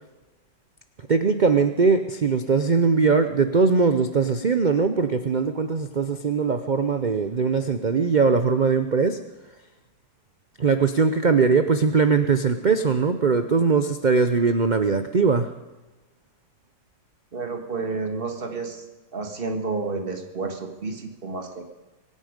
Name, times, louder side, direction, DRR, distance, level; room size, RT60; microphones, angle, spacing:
voice 1, 1.0-9.2 10.6-15.6, right 5 dB, 75° right, 8 dB, 0.4 m, -21 dB
voice 2, 17.3-18.8 19.1-21.6, right 4 dB, 30° right, 3 dB, 1.8 m, -30 dB
24.0 x 9.5 x 5.2 m, 1.1 s
omnidirectional pair, 1.9 m